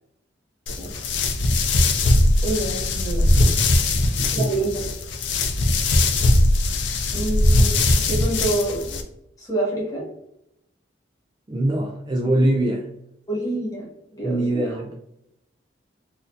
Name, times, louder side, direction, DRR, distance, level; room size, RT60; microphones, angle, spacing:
sound 1, 0.7-9.0, left 2 dB, 65° left, 0.5 m, -20 dB
voice 1, 0.8-1.1 2.4-3.6 4.3-4.8 7.1-7.8 8.1-9.0 9.4-10.0 13.3-13.9 14.1-14.4, right 2 dB, 20° left, -4 dB, 1.2 m, -27 dB
voice 2, 4.0-4.5 11.5-12.9 14.2-14.9, right 1 dB, 25° right, 0 dB, 0.3 m, -23 dB
4.1 x 2.5 x 2.6 m, 0.80 s
head